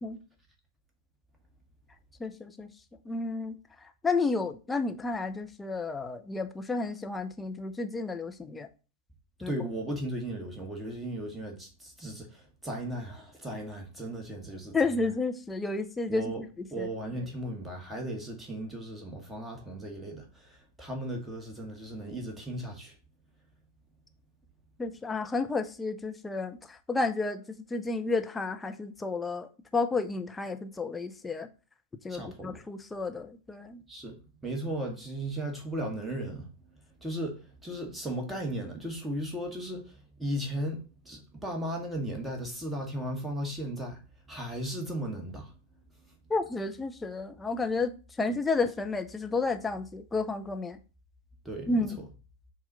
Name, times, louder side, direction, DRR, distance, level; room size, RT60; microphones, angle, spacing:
voice 1, 2.2-2.7 3.1-3.6 4.0-8.7 9.4-9.5 14.7-16.3 16.8-16.9 24.8-31.5 32.0-33.8 46.3-47.9 48.2-50.8 51.7-52.0, left 3 dB, 10° left, 0.6 m, -31 dB
voice 2, 9.4-14.8 16.1-16.4 16.7-22.9 32.1-32.6 33.9-36.5 37.0-44.0 44.3-45.5 51.4-51.8, right 1 dB, 10° right, 1.4 m, -36 dB
7.1 x 2.5 x 5.3 m
figure-of-eight pair, 90°, 0 cm